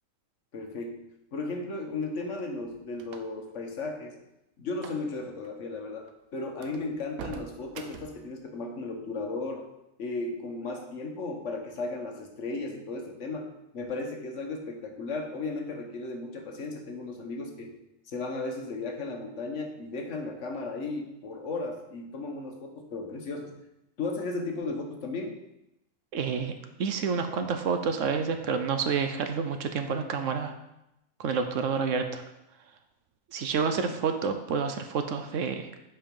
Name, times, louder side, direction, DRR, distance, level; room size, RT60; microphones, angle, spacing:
voice 1, 0.5-1.0 1.3-4.2 4.6-9.7 10.0-17.7 18.1-23.5 24.0-25.4 33.9-34.0, left 3 dB, 60° left, 3 dB, 1.4 m, -35 dB
sound 1, 2.1-3.5 4.7-5.1 5.3-5.5 6.0-6.1 6.6-8.3, right 7 dB, 85° right, 1.1 m, -44 dB
voice 2, 26.1-26.5 26.8-30.5 31.2-32.2 33.3-35.7, right 5 dB, 65° right, 7 dB, 1.0 m, -29 dB
7.5 x 4.7 x 5.3 m, 0.88 s
omnidirectional pair, 1.4 m